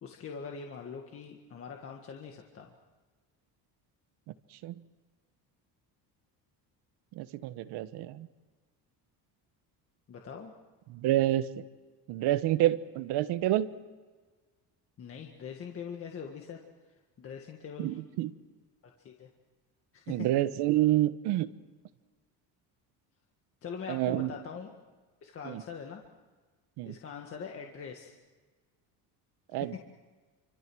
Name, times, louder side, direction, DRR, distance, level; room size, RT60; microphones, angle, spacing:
voice 1, 0.0-2.7 10.1-10.5 15.0-16.6 17.2-18.0 18.8-19.3 19.9-20.3 23.6-24.7 25.2-26.0 26.8-28.1, left 6 dB, 30° left, 2 dB, 1.8 m, -42 dB
voice 2, 7.1-8.3 10.9-11.5 12.1-13.7 17.8-18.3 20.1-21.5 23.9-24.3 25.4-25.6 26.8-26.9 29.5-29.8, right 14 dB, 70° right, 12 dB, 1.3 m, -28 dB
29.0 x 25.5 x 6.3 m, 1.4 s
cardioid pair, 175°, 42 cm